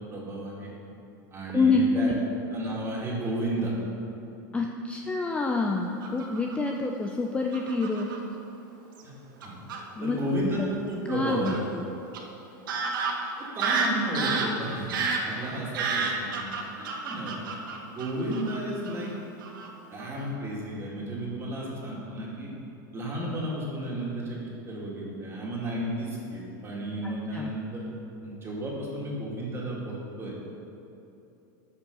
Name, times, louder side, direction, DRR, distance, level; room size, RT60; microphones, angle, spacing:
voice 1, 0.1-0.7 1.3-2.1 2.5-3.7 9.0-9.1 9.4-9.5 10.0-11.6 13.5-14.9 15.2-17.4 17.8-19.1 19.9-22.5 22.9-24.4 24.7-27.8 28.2-30.3, right 1 dB, 25° right, -4 dB, 2.5 m, -33 dB
voice 2, 1.5-2.2 4.5-8.1 10.0-10.2 10.5-10.7 11.1-11.9 27.0-27.5, left 3 dB, 10° left, 1 dB, 0.5 m, -27 dB
Fowl / Bird vocalization bird call bird song, 6.0-6.7 7.5-8.2 9.0-9.1 9.4-9.8 11.4-11.6 12.1-12.2 12.7-18.6 18.8-19.1 19.4-19.7 20.0-20.2, right 4 dB, 85° right, 1.3 m, -30 dB
13.0 x 5.4 x 5.5 m, 2.8 s
supercardioid pair, 130°, 11 cm